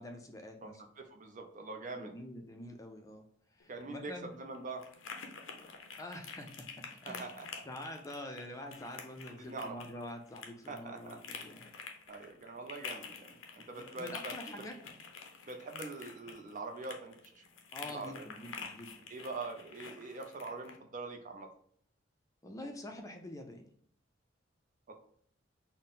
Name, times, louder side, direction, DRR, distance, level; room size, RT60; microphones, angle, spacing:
voice 1, 0.0-0.8 1.9-3.2 3.5-4.3 6.0-6.7 7.0-11.7 13.8-14.8 17.7-19.1 22.4-23.7, left 1 dB, 15° left, 4 dB, 0.4 m, -46 dB
voice 2, 1.0-2.1 3.7-4.9 7.0-7.6 9.4-9.7 10.7-11.2 12.1-14.6 15.5-17.4 17.9-18.2 19.1-21.5 24.9-25.0, right 3 dB, 45° right, 4 dB, 0.5 m, -44 dB
sound 1, 3.6-20.8, left 5 dB, 85° left, 0.6 m, -48 dB
4.0 x 2.1 x 3.6 m, 0.62 s
head